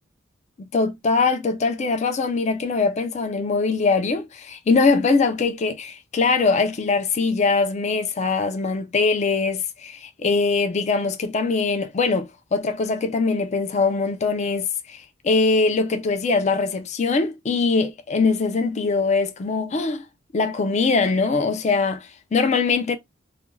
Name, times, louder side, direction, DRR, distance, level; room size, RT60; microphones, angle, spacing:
voice 1, 0.6-20.0 20.3-23.0, left 4 dB, 35° left, 0.4 m, -22 dB
2.4 x 2.2 x 3.0 m
head